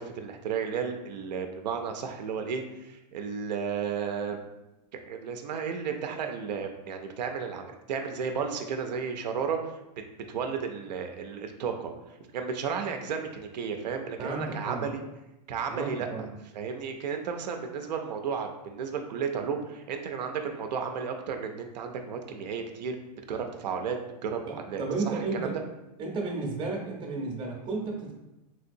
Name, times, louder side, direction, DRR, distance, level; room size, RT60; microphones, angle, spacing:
voice 1, 0.0-4.4 5.1-9.8 10.3-11.9 12.3-15.0 15.5-16.3 16.5-23.0 23.3-24.0 24.2-25.5, right 6 dB, 90° right, 5 dB, 0.4 m, -33 dB
voice 2, 14.2-14.8 15.7-16.3 24.5-25.6 26.0-28.1, right 3 dB, 25° right, 0 dB, 0.6 m, -33 dB
3.3 x 2.7 x 2.6 m, 0.95 s
supercardioid pair, 140°, 21 cm